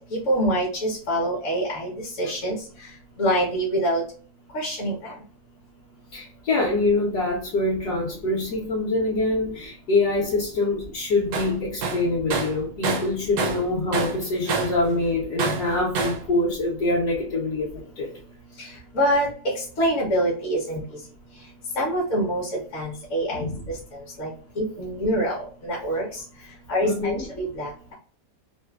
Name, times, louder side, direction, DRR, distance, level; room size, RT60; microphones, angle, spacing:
voice 1, 0.3-1.9 2.2-2.5 3.2-4.0 4.5-5.1 18.9-19.3 19.8-20.8 21.8-22.5 22.7-23.4 24.2-24.3 24.6-25.3 25.6-26.1 26.7-27.7, equal, 55° left, -4 dB, 1.0 m, -24 dB
voice 2, 6.1-18.1 23.3-23.7 26.8-27.3, left 2 dB, 70° left, -5 dB, 1.2 m, -25 dB
Tools, 11.3-11.5 11.8-13.7 13.9-14.8 15.4-16.3, right 5 dB, 75° right, 1.1 m, -27 dB
3.1 x 2.1 x 2.2 m, 0.42 s
omnidirectional pair, 1.8 m